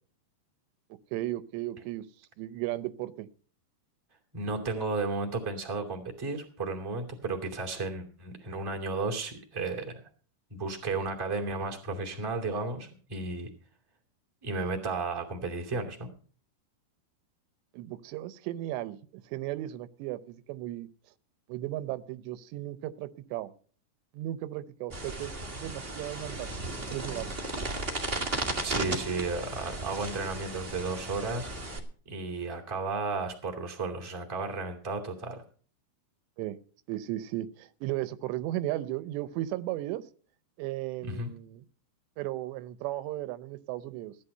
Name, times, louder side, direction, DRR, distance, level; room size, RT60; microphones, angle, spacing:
voice 1, 1.1-2.1 2.4-3.3 17.7-20.9 21.5-23.5 24.1-26.5 26.8-27.3 28.9-29.0 36.4-36.6 36.9-40.1 40.6-41.7 42.2-44.2, right 15 dB, 85° right, 15 dB, 2.9 m, -35 dB
voice 2, 4.3-10.0 10.5-13.5 14.4-16.1 28.6-31.5 32.0-35.4 41.1-41.3, right 3 dB, 10° right, 1 dB, 1.4 m, -33 dB
sound 1, 24.9-31.8, right 2 dB, 45° right, 0.7 m, -35 dB
15.5 x 10.5 x 5.5 m, 0.43 s
omnidirectional pair, 4.9 m